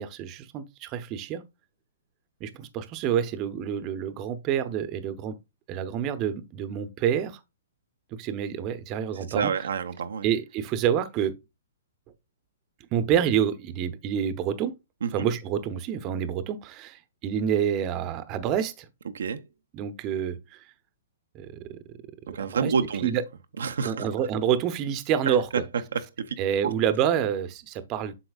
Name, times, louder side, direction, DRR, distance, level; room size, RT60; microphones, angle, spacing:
voice 1, 0.0-1.4 2.4-5.4 5.7-7.4 8.2-9.7 10.2-11.3 12.9-14.7 15.1-18.9 19.7-20.6 21.3-21.8 22.4-22.7 23.0-23.2 23.8-25.7 26.4-28.1, right 9 dB, 30° right, 0.8 m, -28 dB
voice 2, 9.3-10.3 15.0-15.1 19.1-19.4 22.3-23.1 23.6-24.0 25.3-25.4 25.9-26.7, right 6 dB, 80° right, 0.6 m, -29 dB
7.9 x 5.8 x 2.4 m
hypercardioid pair, 140°, 0 cm